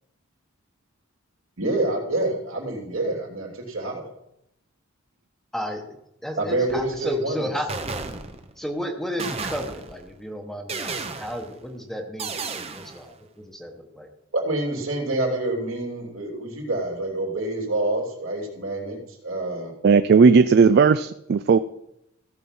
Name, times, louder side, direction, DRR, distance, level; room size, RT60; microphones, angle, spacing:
voice 1, 1.6-4.1 6.4-7.5 14.3-19.0 19.2-19.7, right 2 dB, 80° right, 0 dB, 3.1 m, -27 dB
voice 2, 6.2-7.7 8.6-10.9 11.2-12.4 12.7-13.1 13.5-13.7 14.0-14.1, equal, ahead, 3 dB, 1.1 m, -32 dB
sound 1, 6.7-7.1 7.7-8.6 9.2-10.1 10.7-11.6 12.2-13.0, right 4 dB, 30° right, 0.9 m, -33 dB
voice 3, 19.8-21.6, right 5 dB, 50° right, 12 dB, 0.3 m, -16 dB
16.0 x 5.4 x 6.0 m, 0.80 s
head